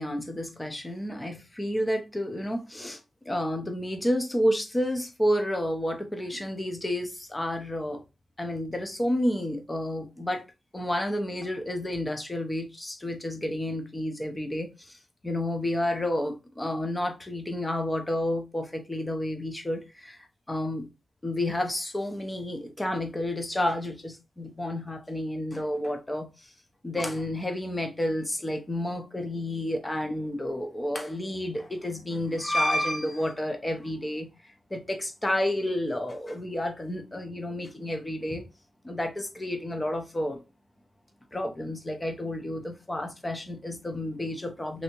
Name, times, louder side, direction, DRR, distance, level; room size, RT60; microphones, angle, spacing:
voice 1, 0.0-3.0 3.3-8.0 8.4-10.4 10.7-15.0 15.2-20.9 21.2-26.5 26.8-34.3 34.7-38.4 38.8-40.4 41.3-44.8, left 1 dB, 15° left, 0.6 m, -30 dB
3.3 x 2.7 x 2.9 m
wide cardioid pair, 170°, 0 cm